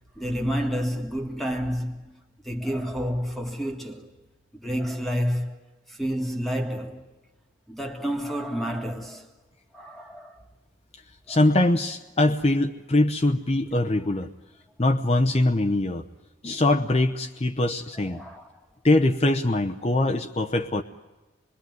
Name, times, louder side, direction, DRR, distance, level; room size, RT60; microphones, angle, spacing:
voice 1, 0.2-2.2 2.4-4.1 4.5-5.6 5.9-7.1 7.7-9.3 9.7-10.3 11.3-11.4 18.0-18.5, equal, ahead, 1.8 m, -29 dB
voice 2, 11.3-14.3 14.8-16.1 16.4-18.2 18.8-20.8, left 2 dB, 30° left, 0.9 m, -22 dB
27.5 x 21.5 x 9.5 m
head